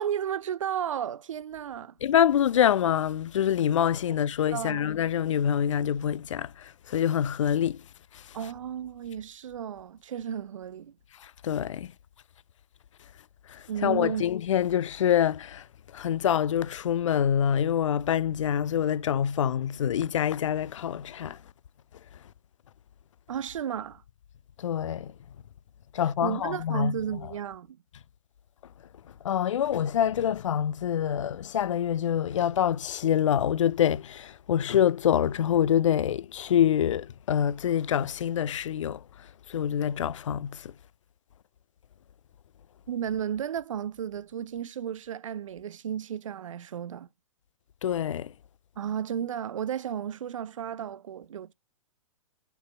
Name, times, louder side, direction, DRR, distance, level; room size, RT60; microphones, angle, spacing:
voice 1, 0.0-2.0 4.5-4.8 8.3-10.9 13.7-14.2 23.3-24.0 26.2-27.8 42.9-47.1 48.8-51.5, right 9 dB, 65° right, 0.4 m, -33 dB
voice 2, 2.0-7.8 8.1-8.4 11.2-11.9 13.5-15.7 15.9-21.4 24.6-25.1 25.9-27.0 29.2-40.7 47.8-48.3, left 9 dB, 65° left, 0.4 m, -26 dB
5.6 x 4.1 x 5.8 m
figure-of-eight pair, 115°, 18 cm